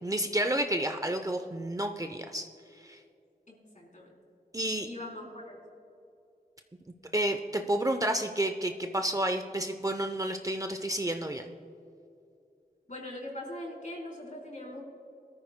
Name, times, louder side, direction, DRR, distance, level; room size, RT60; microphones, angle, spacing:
voice 1, 0.0-2.5 2.8-3.0 4.5-4.9 7.1-11.5, right 1 dB, 20° right, 6 dB, 0.6 m, -30 dB
voice 2, 3.5-4.1 4.8-5.6 12.9-14.9, left 1 dB, 50° left, -2 dB, 3.5 m, -41 dB
20.5 x 13.5 x 2.2 m, 2.6 s
wide cardioid pair, 80°, 17 cm